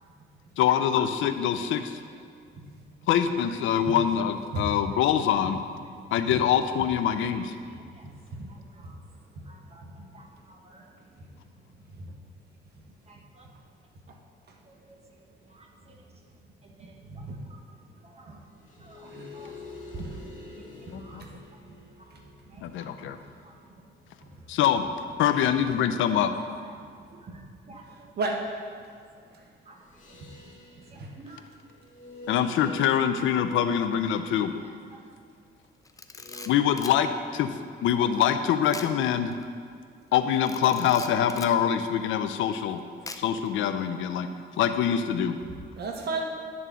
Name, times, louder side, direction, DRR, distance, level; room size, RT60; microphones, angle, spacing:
voice 1, 0.6-2.0 3.1-5.6 6.1-7.5 20.9-21.2 22.6-23.2 24.5-24.8 25.2-26.3 32.3-34.5 36.5-39.3 40.1-42.8 43.2-44.3 44.6-45.4, left 9 dB, 85° left, 9 dB, 0.6 m, -24 dB
voice 2, 2.0-2.3 4.9-5.3 7.3-11.5 13.1-13.5 14.7-18.4 18.8-20.1 20.6-22.1 22.5-23.8 24.2-24.4 25.5-26.3 26.6-28.2 28.8-31.5 34.4-35.4 36.3-36.5 38.8-38.9 43.0-43.1 43.5-43.7, right 2 dB, 30° right, 0 dB, 1.5 m, -55 dB
voice 3, 17.0-17.4 19.0-19.4 19.9-20.2 21.2-21.3 27.3-27.4 27.7-27.8 28.2-28.4 30.9-31.1 45.4-46.3, right 3 dB, 55° right, 1 dB, 1.2 m, -34 dB
sound 1, 18.5-24.1 29.8-34.5 36.1-36.5, left 2 dB, 40° left, 2.0 m, -48 dB
Camera, 35.8-37.0 38.7-39.0 39.3-39.4 40.4-41.6 43.1-43.5, left 3 dB, 15° left, 0.5 m, -41 dB
11.0 x 3.7 x 6.8 m, 2.1 s
cardioid pair, 90°, 20 cm